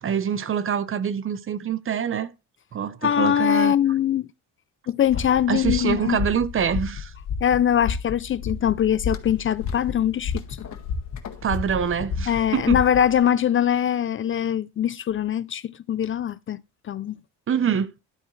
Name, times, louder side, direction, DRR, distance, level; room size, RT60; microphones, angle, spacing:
voice 1, 0.0-2.3 2.7-3.7 5.5-7.1 11.4-12.8 17.5-17.9, right 8 dB, 40° right, 0.8 m, -25 dB
voice 2, 3.0-4.3 4.9-6.2 7.4-10.6 12.3-16.6 16.9-17.2, left 9 dB, 40° left, 0.4 m, -22 dB
sound 1, 5.1-13.2, left 6 dB, 80° left, 1.8 m, -31 dB
sound 2, 9.1-14.2, left 8 dB, 55° left, 1.6 m, -47 dB
11.5 x 8.6 x 3.2 m
cardioid pair, 140°, 33 cm